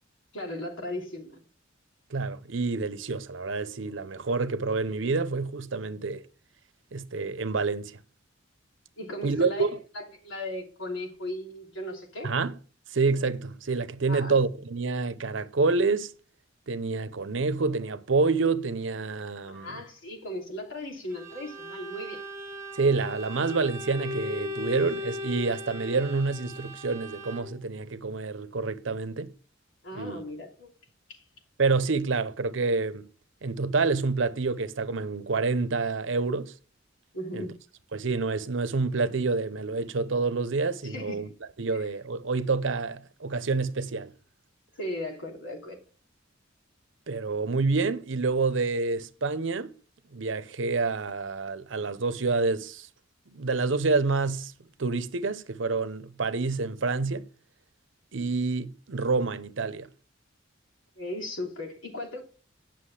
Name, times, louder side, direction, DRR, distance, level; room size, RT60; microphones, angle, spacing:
voice 1, 0.3-1.4 9.0-12.3 14.1-14.3 19.4-22.2 29.8-30.7 31.1-31.2 37.1-37.5 40.8-41.3 41.7-41.8 44.8-45.8 61.0-62.2, left 1 dB, 85° left, 3.1 m, -37 dB
voice 2, 2.1-6.3 6.9-8.0 9.2-9.8 12.2-12.6 12.9-16.1 16.7-19.8 22.7-29.3 29.9-30.2 31.6-33.1 33.4-36.5 37.3-37.5 37.9-41.3 41.6-44.1 47.1-49.7 50.1-52.9 53.3-54.5 54.8-57.3 58.1-59.9, right 4 dB, 70° right, 0.8 m, -28 dB
Bowed string instrument, 21.1-27.7, left 2 dB, 15° right, 1.3 m, -38 dB
10.0 x 6.2 x 4.8 m
head